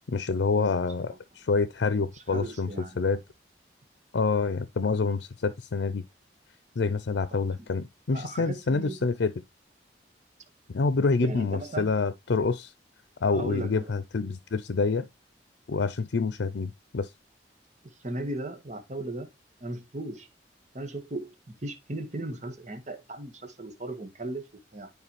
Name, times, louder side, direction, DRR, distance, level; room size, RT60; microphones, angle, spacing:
voice 1, 0.1-3.2 4.1-6.0 6.8-9.3 10.7-12.7 13.2-15.1 15.7-17.1, left 4 dB, 85° left, 0.5 m, -27 dB
voice 2, 2.1-3.2 8.1-9.0 11.2-11.9 13.3-13.9 17.8-19.3 19.6-20.3 20.7-24.9, right 2 dB, 40° right, 1.5 m, -37 dB
9.9 x 4.7 x 3.2 m
head